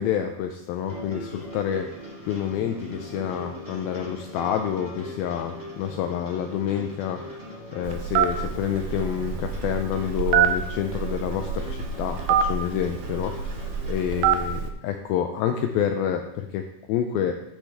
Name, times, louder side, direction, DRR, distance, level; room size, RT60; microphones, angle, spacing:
voice 1, 0.0-7.4 7.7-17.3, left 9 dB, 90° left, 5 dB, 2.1 m, -28 dB
sound 1, 0.7-14.6, equal, 25° right, 0.4 m, -40 dB
Telephone, 7.8-14.7, right 8 dB, 80° right, 2.4 m, -26 dB
13.5 x 6.2 x 3.4 m, 0.82 s
omnidirectional pair, 4.9 m